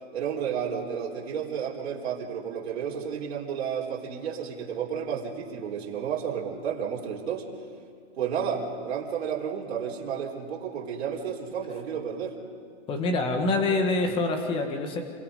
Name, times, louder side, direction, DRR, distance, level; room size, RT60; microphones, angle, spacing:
voice 1, 0.1-7.5 8.2-12.3, right 7 dB, 60° right, -2 dB, 4.1 m, -32 dB
voice 2, 12.9-15.0, left 2 dB, 15° left, 4 dB, 1.8 m, -26 dB
28.5 x 23.0 x 5.3 m, 2.2 s
hypercardioid pair, 165°, 35 cm